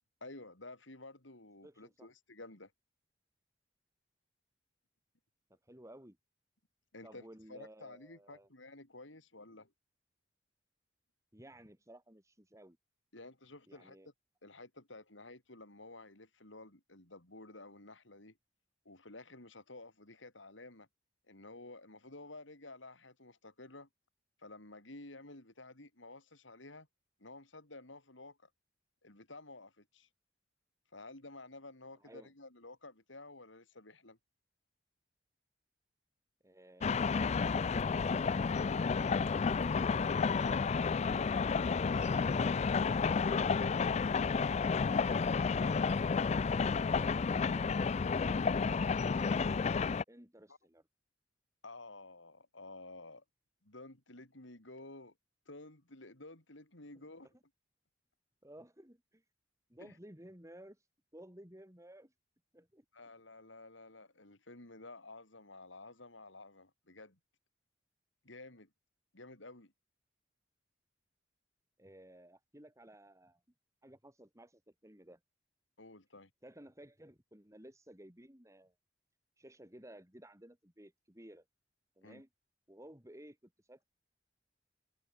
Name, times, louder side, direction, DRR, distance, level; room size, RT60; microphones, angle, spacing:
voice 1, 0.2-2.7 6.9-9.7 13.1-14.0 14.4-18.4 18.8-20.9 21.3-23.9 24.4-26.9 27.2-28.5 29.0-30.1 30.9-34.2 50.5-50.6 51.6-53.2 53.6-55.1 55.5-57.3 59.8-60.0 62.9-67.2 68.2-68.7 69.1-69.7 75.8-76.3 82.0-82.2, left 2 dB, 80° left, 5.1 m, -52 dB
voice 2, 1.6-2.1 5.5-6.2 7.0-8.5 11.3-12.8 13.7-14.1 32.0-32.3 36.4-38.5 41.8-43.8 50.1-50.8 56.9-57.3 58.4-59.2 59.7-60.8 61.1-62.1 62.5-62.8 71.8-73.4 73.8-75.2 76.4-78.7 79.4-81.4 82.0-82.3 82.7-83.8, right 1 dB, 15° right, 4.4 m, -56 dB
sound 1, 36.8-50.0, left 5 dB, 35° left, 0.4 m, -31 dB
head